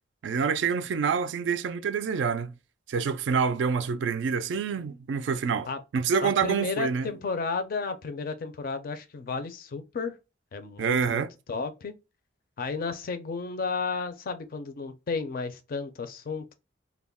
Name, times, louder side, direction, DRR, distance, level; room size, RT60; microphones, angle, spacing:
voice 1, 0.2-2.5 2.9-5.7 5.9-7.1 10.8-11.3, right 6 dB, 65° right, 0.3 m, -27 dB
voice 2, 6.2-10.2 10.5-11.9 12.6-16.5, left 4 dB, 50° left, 0.4 m, -33 dB
2.3 x 2.1 x 3.4 m
head